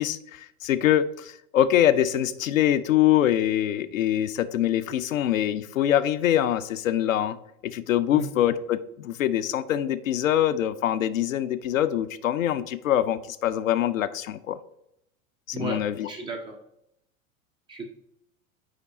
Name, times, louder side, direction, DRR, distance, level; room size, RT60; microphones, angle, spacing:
voice 1, 0.0-7.4 7.6-14.6 15.5-16.1, left 11 dB, 70° left, 12 dB, 0.5 m, -24 dB
voice 2, 15.5-16.6 17.7-17.8, right 3 dB, 10° right, 3 dB, 0.3 m, -35 dB
5.0 x 4.7 x 4.0 m, 0.76 s
figure-of-eight pair, 85°, 42 cm